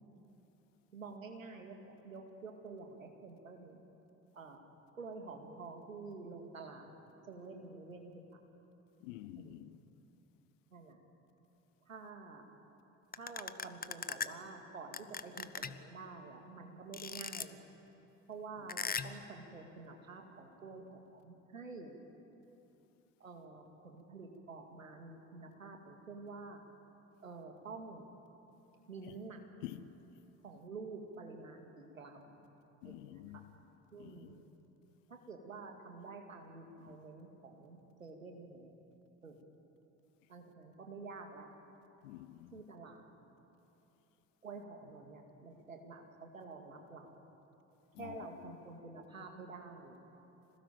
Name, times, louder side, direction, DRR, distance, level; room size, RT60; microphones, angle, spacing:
voice 1, 0.9-1.8 2.0-3.8 4.3-4.7 5.0-6.9 7.3-8.4 9.3-9.8 10.7-11.0 11.9-12.5 13.2-17.6 18.3-21.9 23.2-26.6 27.2-28.1 28.9-29.4 30.4-31.7 31.9-32.4 32.8-33.2 33.9-34.4 35.1-38.7 39.2-39.4 40.3-41.5 42.5-43.0 44.4-47.2 48.0-50.0, right 4 dB, 90° right, 2.2 m, -49 dB
voice 2, 9.0-9.8 29.1-29.2 29.6-29.9 32.8-33.5 34.0-34.4 36.8-37.0 42.0-42.6 47.9-48.6, left 15 dB, 70° left, 0.9 m, -49 dB
sound 1, 13.1-14.3 14.9-15.8 16.9-17.4 18.7-19.2, left 6 dB, 25° left, 1.1 m, -38 dB
26.5 x 19.0 x 9.0 m
figure-of-eight pair, 55°, 39 cm